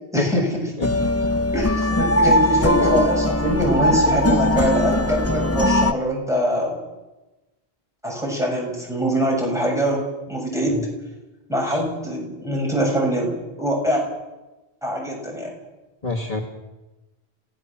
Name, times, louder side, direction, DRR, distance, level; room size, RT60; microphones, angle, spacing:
voice 1, 0.1-0.6 1.5-6.8 8.0-10.9 11.5-14.0 14.8-15.5, equal, 5° right, -2 dB, 7.7 m, -23 dB
sound 1, 0.8-5.9, left 1 dB, 15° left, 0.7 m, -20 dB
voice 2, 16.0-16.4, left 2 dB, 35° left, -1 dB, 2.3 m, -25 dB
27.5 x 17.5 x 7.6 m, 1.1 s
omnidirectional pair, 1.1 m